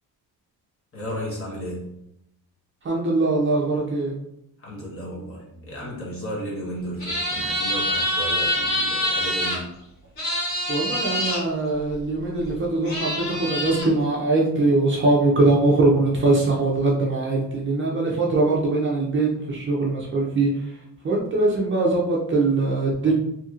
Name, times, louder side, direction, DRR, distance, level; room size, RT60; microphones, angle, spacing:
voice 1, 0.9-1.9 4.6-9.7, equal, 35° left, -4 dB, 1.1 m, -34 dB
voice 2, 2.8-4.1 10.7-20.5 21.0-23.1, right 2 dB, 35° right, -3 dB, 0.4 m, -22 dB
sound 1, 7.0-9.6 10.2-11.4 12.4-12.5 12.8-13.9, equal, 65° left, 1.4 m, -25 dB
2.8 x 2.8 x 2.4 m, 0.81 s
cardioid pair, 160°, 38 cm